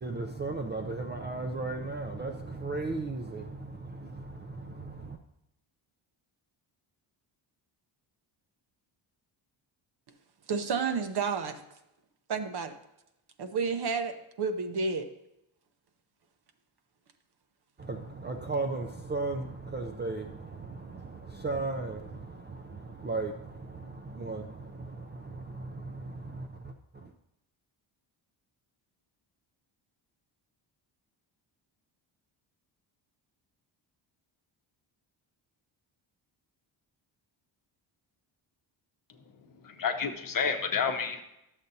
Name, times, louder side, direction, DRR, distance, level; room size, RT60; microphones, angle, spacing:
voice 1, 0.0-5.2 17.8-27.1, right 3 dB, 25° right, 0.5 m, -36 dB
voice 2, 10.5-11.6 12.3-12.7 13.4-15.1, right 5 dB, 55° right, 0.9 m, -31 dB
voice 3, 39.6-41.2, left 6 dB, 45° left, 1.0 m, -29 dB
12.5 x 7.2 x 2.7 m
cardioid pair, 115°, 47 cm